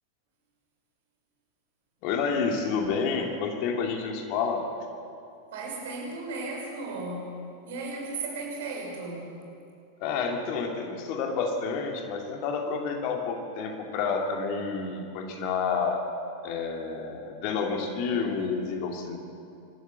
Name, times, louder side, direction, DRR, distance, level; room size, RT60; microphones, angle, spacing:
voice 1, 2.0-4.6 10.0-16.0 16.4-19.2, left 5 dB, 45° left, 3 dB, 2.6 m, -29 dB
voice 2, 2.8-3.3 5.5-7.3 7.7-9.4, right 3 dB, 55° right, 0 dB, 5.5 m, -36 dB
25.0 x 13.5 x 8.2 m, 2.5 s
figure-of-eight pair, 90°, 0 cm